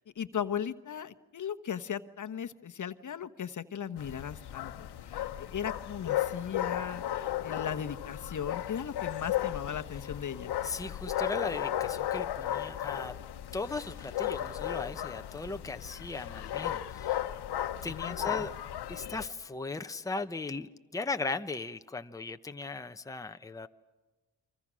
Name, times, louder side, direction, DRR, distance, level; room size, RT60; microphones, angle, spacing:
voice 1, 0.1-10.5 17.5-18.5, left 8 dB, 50° left, 8 dB, 1.1 m, -37 dB
sound 1, 4.0-19.3, left 12 dB, 80° left, 1.2 m, -35 dB
voice 2, 10.6-13.1 13.5-17.2 17.8-18.5 18.9-23.7, left 3 dB, 10° left, 7 dB, 0.9 m, -37 dB
29.5 x 24.5 x 6.2 m, 1.2 s
cardioid pair, 70°, 39 cm